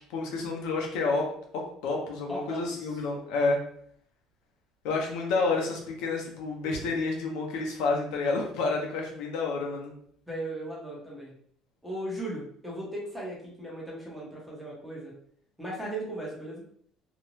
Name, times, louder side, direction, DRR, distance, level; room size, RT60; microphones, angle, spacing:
voice 1, 0.1-3.6 4.8-9.9, left 3 dB, 75° left, 0 dB, 0.6 m, -29 dB
voice 2, 2.3-2.9 10.3-11.4 11.8-15.1 15.6-16.7, right 1 dB, ahead, -5 dB, 0.8 m, -37 dB
2.5 x 2.1 x 3.0 m, 0.64 s
cardioid pair, 165°, 0 cm